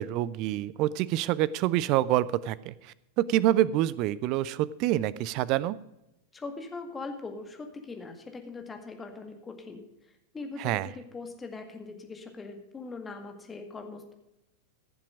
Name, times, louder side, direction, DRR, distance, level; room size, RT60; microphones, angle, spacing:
voice 1, 0.0-2.7 3.2-5.8 10.6-10.9, right 14 dB, 40° right, 20 dB, 0.5 m, -26 dB
voice 2, 6.3-9.8 10.3-14.1, left 3 dB, 15° left, 4 dB, 1.9 m, -41 dB
15.0 x 7.4 x 5.0 m, 0.90 s
figure-of-eight pair, 90°, 0 cm